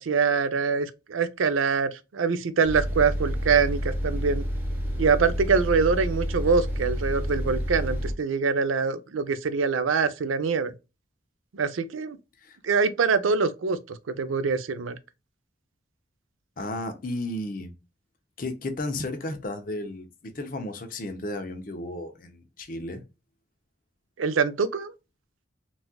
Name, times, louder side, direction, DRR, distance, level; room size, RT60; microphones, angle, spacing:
voice 1, 0.0-4.4 5.0-10.7 11.5-12.2 12.6-15.0 24.2-24.9, right 5 dB, 90° right, 0.5 m, -24 dB
sound 1, 2.6-8.1, equal, 10° right, 0.8 m, -29 dB
voice 2, 16.6-17.7 18.4-23.0, left 1 dB, 45° left, 0.6 m, -33 dB
4.1 x 2.4 x 2.2 m
head